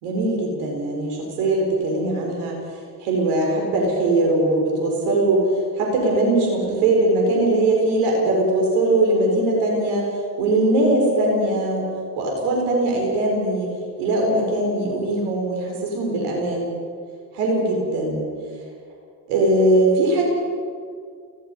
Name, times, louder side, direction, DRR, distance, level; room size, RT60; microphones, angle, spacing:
voice 1, 0.0-2.5 3.0-5.4 5.7-10.1 10.4-11.9 12.2-16.7 17.3-18.3 19.3-20.2, right 2 dB, 85° right, -1 dB, 4.6 m, -20 dB
29.0 x 17.0 x 5.4 m, 2.1 s
hypercardioid pair, 40°, 49 cm